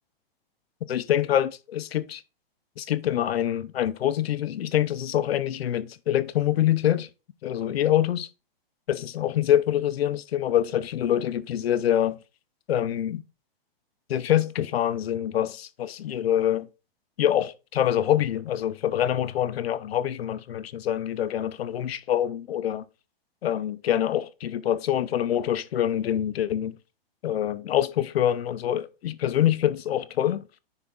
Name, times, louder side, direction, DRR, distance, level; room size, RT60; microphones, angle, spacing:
voice 1, 0.9-2.2 2.8-7.1 7.4-8.3 8.9-12.2 12.7-13.2 14.1-16.7 17.2-22.8 23.4-26.7 27.2-30.4, left 11 dB, 80° left, 0.7 m, -25 dB
9.8 x 3.6 x 3.8 m
hypercardioid pair, 175°, 30 cm